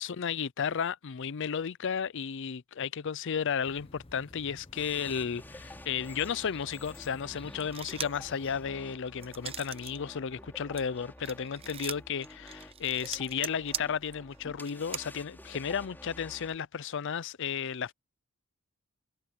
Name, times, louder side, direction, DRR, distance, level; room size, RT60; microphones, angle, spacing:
voice 1, 0.0-17.9, left 7 dB, 60° left, 0.5 m, -33 dB
sound 1, 3.7-8.7, left 2 dB, 25° left, 1.0 m, -53 dB
sound 2, 4.7-16.6, left 1 dB, 10° left, 3.9 m, -50 dB
sound 3, 7.6-8.3 8.7-10.0 10.3-15.0, right 8 dB, 30° right, 0.8 m, -40 dB
head